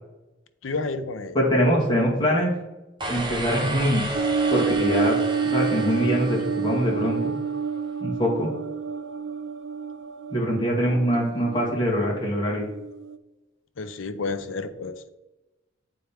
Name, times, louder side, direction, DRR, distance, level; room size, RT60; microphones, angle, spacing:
voice 1, 0.6-1.4 13.8-15.1, left 3 dB, 85° left, 10 dB, 0.6 m, -31 dB
voice 2, 1.3-2.5 3.1-4.0 4.5-5.2 5.5-7.3 8.0-8.5 10.3-12.7, equal, 25° left, -4 dB, 1.7 m, -23 dB
sound 1, 3.0-7.2, right 2 dB, 25° right, 0.8 m, -32 dB
sound 2, 4.1-13.2, right 6 dB, 65° right, 0.3 m, -29 dB
9.1 x 4.4 x 3.5 m, 1.0 s
head